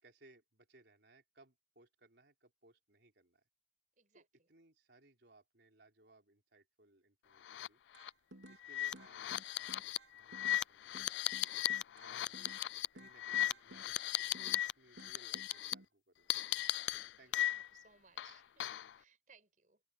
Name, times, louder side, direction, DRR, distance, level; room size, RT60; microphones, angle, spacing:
voice 1, 0.0-3.4 4.1-7.8 8.5-11.3 12.0-12.6 12.9-16.4 17.2-17.6, right 2 dB, 70° right, 3.9 m, -66 dB
voice 2, 4.0-4.5 17.2-19.8, right 6 dB, 45° right, 5.9 m, -67 dB
sound 1, 7.4-7.7 8.0-8.1 8.6-14.7 15.0-15.7 16.3-17.8 18.2-18.9, left 13 dB, 75° left, 0.3 m, -37 dB
sound 2, 7.9-8.6 8.9-10.6 10.9-12.7 13.0-14.7 15.0-15.9, right 1 dB, 85° right, 3.2 m, -56 dB
open air
head